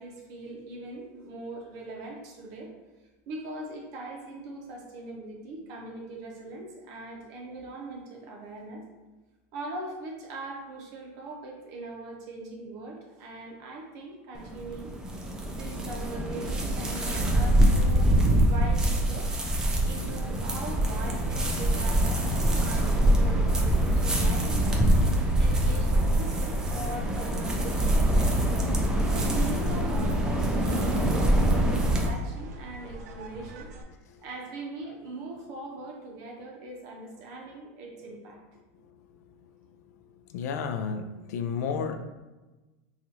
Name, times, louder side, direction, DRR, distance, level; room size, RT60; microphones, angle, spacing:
voice 1, 0.0-2.7 3.3-8.8 9.5-14.9 15.5-19.3 19.8-24.8 25.4-28.6 29.1-33.7 34.2-38.4, right 2 dB, 40° right, 0 dB, 0.7 m, -41 dB
sound 1, 14.4-32.1, right 1 dB, 10° right, 0.3 m, -24 dB
sound 2, 28.3-33.8, right 1 dB, 90° right, 0.5 m, -39 dB
voice 2, 40.3-42.0, left 6 dB, 85° left, 8 dB, 0.4 m, -31 dB
3.0 x 2.4 x 4.1 m, 1.2 s
supercardioid pair, 165°, 9 cm